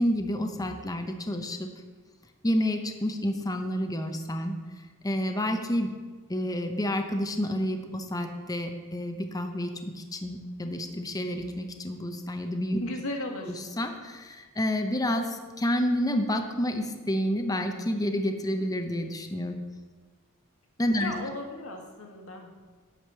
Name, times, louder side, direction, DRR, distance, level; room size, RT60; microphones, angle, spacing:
voice 1, 0.0-1.7 2.4-4.5 5.0-5.9 6.3-12.8 13.5-19.6 20.8-21.1, equal, 15° left, 5 dB, 0.7 m, -29 dB
voice 2, 12.8-13.6 21.0-22.6, left 1 dB, 70° left, 2 dB, 1.8 m, -36 dB
10.0 x 5.0 x 7.4 m, 1.4 s
head